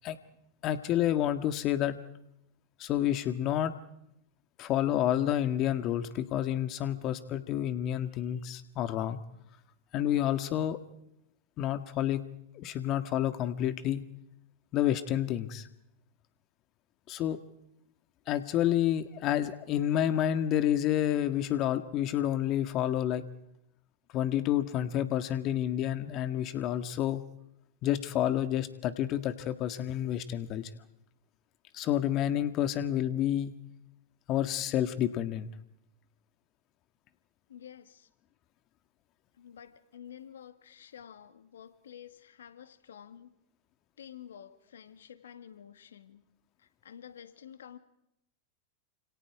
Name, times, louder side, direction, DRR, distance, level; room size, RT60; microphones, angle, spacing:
voice 1, 0.6-2.0 2.8-3.7 4.6-9.2 9.9-10.8 11.6-12.2 12.6-14.0 14.7-15.7 17.1-17.4 18.3-23.2 24.1-27.2 27.8-30.7 31.7-33.5 34.3-35.5, left 11 dB, 45° left, 10 dB, 1.7 m, -29 dB
voice 2, 37.5-38.1 39.4-43.3 44.0-46.2 46.6-47.8, left 9 dB, 80° left, 10 dB, 1.9 m, -50 dB
29.5 x 27.5 x 4.9 m, 0.81 s
hypercardioid pair, 100°, 0 cm